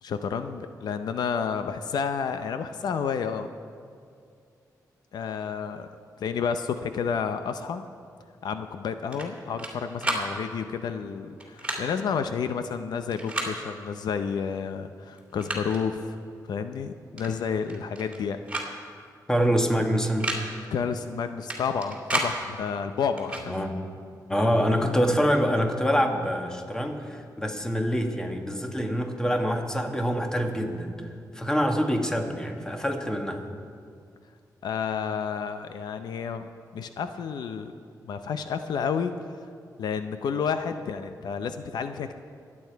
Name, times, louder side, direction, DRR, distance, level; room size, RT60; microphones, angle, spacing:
voice 1, 0.0-3.5 5.1-5.9 6.2-7.8 8.4-16.2 16.4-18.4 20.7-23.5 34.6-37.7 38.0-39.1 39.8-42.2, left 6 dB, 80° left, 9 dB, 0.6 m, -30 dB
sound 1, 9.1-9.7 10.0-10.3 11.4-11.8 13.1-13.5 14.6-14.7 15.1-15.8 17.2-17.3 17.6-18.2 18.5-18.7 19.0-19.1 20.0-20.4 21.5-22.3 23.2-23.5, right 1 dB, 15° right, 2.6 m, -31 dB
voice 2, 19.3-20.3 23.5-23.8 24.3-31.1 31.3-33.4, equal, 10° left, 3 dB, 1.6 m, -25 dB
24.0 x 8.7 x 4.6 m, 2.3 s
cardioid pair, 100°, 7 cm